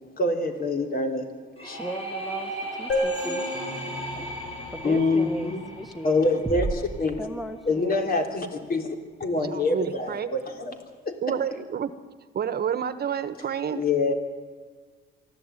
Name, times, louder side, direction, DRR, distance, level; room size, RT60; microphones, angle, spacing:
voice 1, 0.2-1.3 1.6-1.8 4.8-5.6 6.0-7.2 7.7-11.1 13.7-14.1, left 3 dB, 50° left, 3.3 m, -26 dB
sound 1, 1.6-7.2, right 1 dB, 30° left, 6.8 m, -37 dB
voice 2, 1.8-2.5 2.8-3.4 4.2-4.3 4.7-6.3 7.2-8.1, equal, ahead, 1.5 m, -37 dB
sound 2, 2.9-6.4, left 1 dB, 75° left, 6.0 m, -32 dB
sound 3, 6.4-8.2, right 3 dB, 20° right, 1.2 m, -33 dB
voice 3, 9.4-10.4 11.2-11.9 12.3-13.8, right 8 dB, 55° right, 1.3 m, -29 dB
24.0 x 14.0 x 9.2 m
cardioid pair, 90°, 20 cm